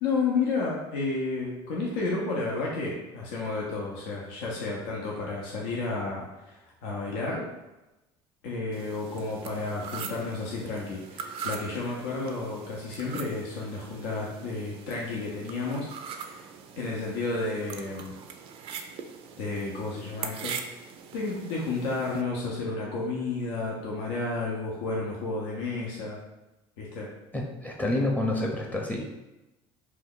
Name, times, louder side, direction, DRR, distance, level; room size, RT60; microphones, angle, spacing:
voice 1, 0.0-6.6 6.8-7.4 8.4-16.5 16.8-18.1 19.4-20.5 21.1-26.2 26.8-27.1, left 3 dB, 90° left, -4 dB, 0.6 m, -31 dB
sound 1, 8.7-22.2, right 6 dB, 55° right, 0.4 m, -42 dB
voice 2, 27.3-29.0, left 1 dB, 15° left, 0 dB, 0.6 m, -28 dB
2.7 x 2.2 x 3.7 m, 1.0 s
supercardioid pair, 90°, 11 cm